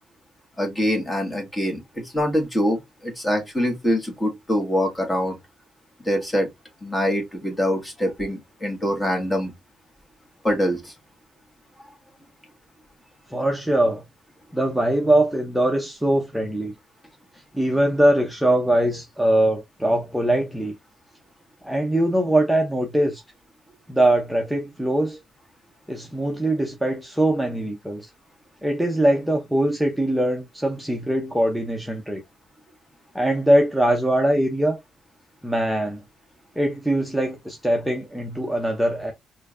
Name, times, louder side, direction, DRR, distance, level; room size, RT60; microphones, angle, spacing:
voice 1, 0.6-5.4 6.0-6.5 6.8-9.5 10.4-10.9, equal, 15° left, 1.7 m, -24 dB
voice 2, 13.3-14.0 14.5-16.7 17.5-20.7 21.6-23.2 23.9-25.2 25.9-28.1 28.6-32.2 33.1-34.8 35.4-36.0 36.6-39.1, right 1 dB, 5° right, 0.7 m, -22 dB
4.3 x 2.6 x 2.4 m
cardioid pair, 90°, 0 cm